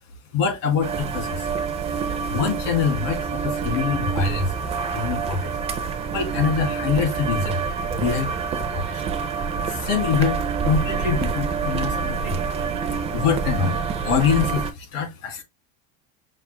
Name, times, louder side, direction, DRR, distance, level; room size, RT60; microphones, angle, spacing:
voice 1, 0.3-1.5 2.3-4.5 4.9-7.6 7.9-8.4 8.7-9.0 9.7-12.5 12.9-15.4, left 6 dB, 75° left, 2.3 m, -25 dB
sound 1, 0.8-14.7, right 5 dB, 15° right, 0.4 m, -27 dB
5.7 x 2.4 x 3.2 m
supercardioid pair, 155°, 39 cm